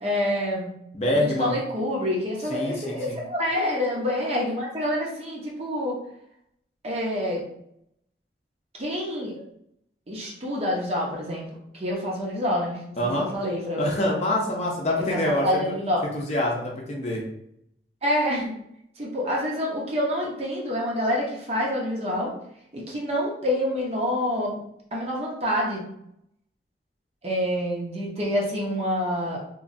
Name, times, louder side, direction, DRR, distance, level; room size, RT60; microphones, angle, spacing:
voice 1, 0.0-0.7 1.1-6.0 6.8-7.4 8.8-9.3 10.1-11.5 11.7-13.0 13.3-13.9 15.0-16.0 18.0-18.5 19.0-22.3 22.7-24.6 24.9-25.9 27.2-29.4, left 1 dB, 35° right, -3 dB, 0.7 m, -27 dB
voice 2, 0.9-1.6 2.5-3.2 13.0-13.3 13.8-15.5 16.1-17.2, left 1 dB, 40° left, -2 dB, 0.5 m, -25 dB
3.0 x 2.3 x 2.5 m, 0.75 s
head